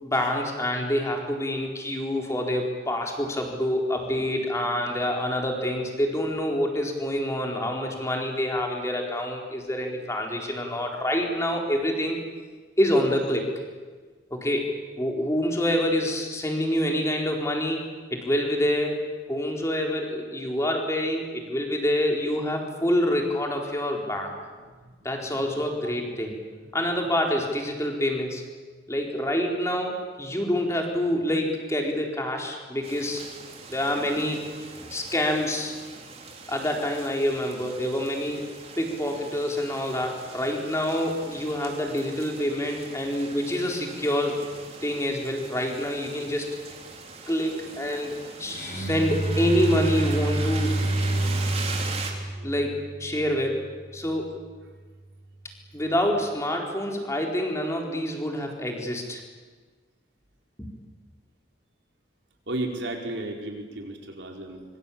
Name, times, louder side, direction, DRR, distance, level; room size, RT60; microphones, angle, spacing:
voice 1, 0.0-12.2 12.8-13.5 14.3-17.9 18.1-19.0 19.3-24.4 25.0-26.4 26.7-28.4 28.9-33.3 33.7-34.4 34.8-35.7 36.5-38.5 38.8-44.4 44.8-46.5 47.3-50.8 52.4-53.7 53.9-54.4 55.7-59.2 60.6-60.8, equal, 15° left, 1 dB, 4.3 m, -27 dB
voice 2, 24.7-26.4 33.9-34.3 48.4-48.7 52.3-52.5 62.5-64.6, right 1 dB, 80° right, 2 dB, 4.8 m, -36 dB
sound 1, 32.8-52.1, right 4 dB, 35° right, 3.6 m, -41 dB
Bowed string instrument, 48.5-53.8, right 2 dB, 45° left, 7.8 m, -28 dB
25.0 x 24.5 x 8.8 m, 1.4 s
head